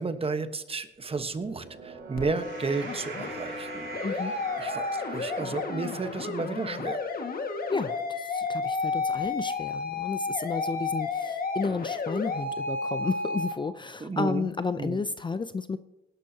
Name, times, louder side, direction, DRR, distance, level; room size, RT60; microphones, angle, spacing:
voice 1, 0.0-3.9 4.6-7.0 14.0-14.5 14.8-15.0, right 4 dB, 30° right, 9 dB, 1.2 m, -32 dB
sound 1, 1.2-7.7, right 5 dB, 75° right, 3.0 m, -43 dB
sound 2, 2.2-13.5, left 3 dB, 50° left, 1.8 m, -32 dB
voice 2, 7.7-15.8, left 4 dB, 25° left, 12 dB, 0.5 m, -32 dB
18.5 x 11.0 x 2.8 m, 1.0 s
cardioid pair, 90°, 20 cm